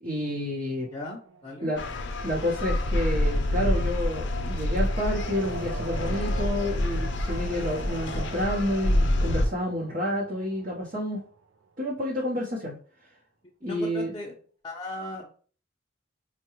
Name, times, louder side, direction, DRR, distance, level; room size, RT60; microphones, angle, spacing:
voice 1, 0.0-0.9 1.6-1.8 2.2-11.2 11.8-12.7 13.6-14.1, left 1 dB, 40° right, -5 dB, 0.8 m, -29 dB
sound 1, 0.7-11.6, right 3 dB, 85° right, 0.5 m, -43 dB
voice 2, 0.9-1.7 13.6-14.3 14.6-15.3, left 1 dB, 20° left, -3 dB, 0.5 m, -37 dB
sound 2, 1.8-9.5, left 1 dB, 65° left, 0.6 m, -27 dB
4.6 x 2.2 x 2.9 m, 0.42 s
head